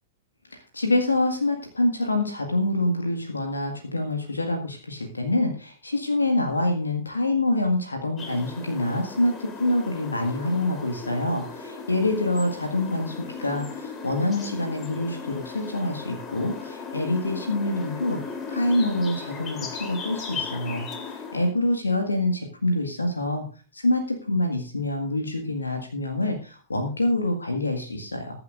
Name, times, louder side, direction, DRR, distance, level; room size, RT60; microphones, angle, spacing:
voice 1, 0.5-18.2 18.5-23.5 23.7-28.4, left 1 dB, 80° left, 3 dB, 1.8 m, -26 dB
sound 1, 8.2-21.5, left 5 dB, 25° left, 3.4 m, -37 dB
21.5 x 9.7 x 2.6 m, 0.38 s
figure-of-eight pair, 100°, 0 cm